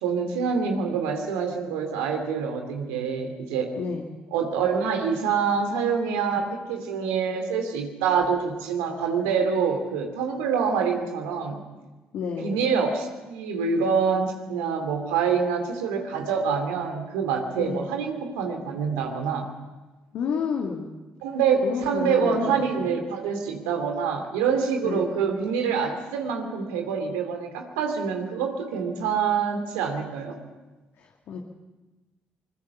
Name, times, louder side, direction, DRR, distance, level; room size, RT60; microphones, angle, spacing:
voice 1, 0.0-3.7 4.3-11.6 12.4-19.5 21.2-30.4, right 6 dB, 85° right, 4 dB, 3.0 m, -26 dB
voice 2, 12.1-12.5 17.6-17.9 20.1-20.9 21.6-22.9 24.8-25.1 31.0-31.4, left 6 dB, 70° left, 1 dB, 2.3 m, -30 dB
24.5 x 21.0 x 7.2 m, 1.2 s
hypercardioid pair, 55°, 5 cm